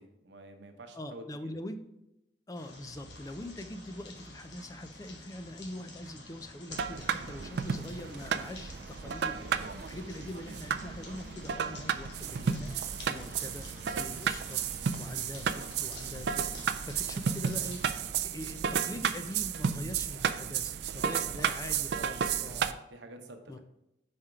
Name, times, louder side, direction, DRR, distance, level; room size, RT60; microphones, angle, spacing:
voice 1, 0.0-1.5 9.0-9.9 21.0-22.3 22.9-23.6, right 1 dB, 90° right, 5 dB, 0.9 m, -49 dB
voice 2, 1.0-1.8 2.5-13.7 14.0-14.6 15.0-22.8 23.5-23.6, left 1 dB, 20° left, 8 dB, 0.3 m, -43 dB
sound 1, 2.6-18.0, left 2 dB, 75° left, 1.2 m, -50 dB
sound 2, 6.7-22.7, right 7 dB, 65° right, 0.3 m, -33 dB
sound 3, 10.6-19.4, right 1 dB, 45° left, 2.4 m, -59 dB
4.9 x 4.3 x 4.8 m, 0.87 s
head